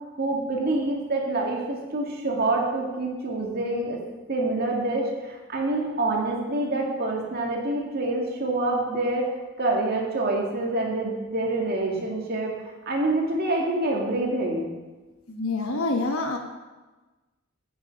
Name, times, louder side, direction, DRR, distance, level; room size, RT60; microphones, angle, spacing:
voice 1, 0.1-4.0 4.3-9.3 9.6-12.5 12.9-14.7, right 2 dB, 45° right, -1 dB, 1.9 m, -26 dB
voice 2, 15.3-16.4, left 2 dB, 75° left, 4 dB, 1.1 m, -26 dB
8.8 x 8.8 x 5.2 m, 1.2 s
head